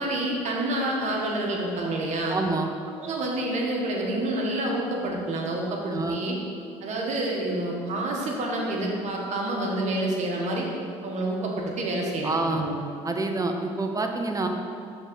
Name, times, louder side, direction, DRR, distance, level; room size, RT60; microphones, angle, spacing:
voice 1, 0.0-2.4 3.0-6.4 6.8-10.7 11.0-12.7, right 1 dB, 55° right, -1 dB, 1.5 m, -28 dB
voice 2, 2.3-2.7 5.9-6.2 12.2-12.7 13.0-14.5, right 3 dB, 25° right, 4 dB, 0.9 m, -27 dB
6.2 x 3.9 x 6.3 m, 2.3 s
hypercardioid pair, 65°, 14 cm